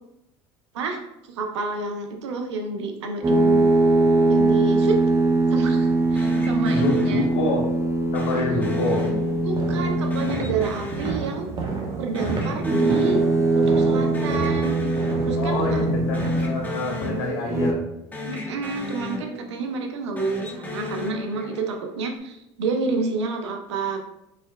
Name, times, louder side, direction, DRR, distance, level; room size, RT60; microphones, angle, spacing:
voice 1, 1.3-3.6 4.3-5.0 5.5-7.2 9.4-11.5 12.0-13.2 13.5-14.8 15.2-15.8 18.3-24.0, right 3 dB, 90° right, 4 dB, 0.6 m, -29 dB
sound 1, 3.2-10.6 12.5-16.7 17.4-17.7, right 2 dB, 20° right, 0.6 m, -21 dB
sound 2, 6.2-7.7 8.1-9.7 10.1-11.9 12.1-13.7 14.0-15.7 16.1-17.9 18.1-19.7 20.1-21.8, left 3 dB, 10° left, 0.8 m, -35 dB
voice 2, 6.6-7.7 8.1-9.0 15.4-17.9, left 2 dB, 70° left, -1 dB, 1.2 m, -27 dB
sound 3, 8.5-17.3, right 3 dB, 35° right, 1.0 m, -32 dB
4.3 x 3.4 x 2.3 m, 0.83 s
hypercardioid pair, 85°, 14 cm